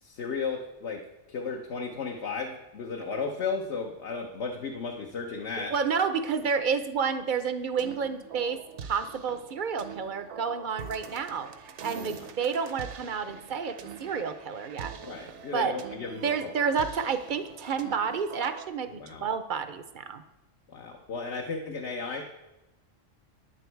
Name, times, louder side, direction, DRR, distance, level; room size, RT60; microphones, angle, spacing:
voice 1, 0.0-1.0 1.3-5.7 11.9-12.3 15.0-16.3 18.9-19.2 20.7-22.2, left 4 dB, 65° left, 2 dB, 1.2 m, -34 dB
voice 2, 5.6-11.5 11.8-14.9 15.5-15.8 16.2-20.2, right 6 dB, 50° right, 11 dB, 0.6 m, -30 dB
sound 1, 7.6-18.7, right 7 dB, 70° right, 1.0 m, -44 dB
9.8 x 9.1 x 4.5 m, 1.0 s
omnidirectional pair, 1.3 m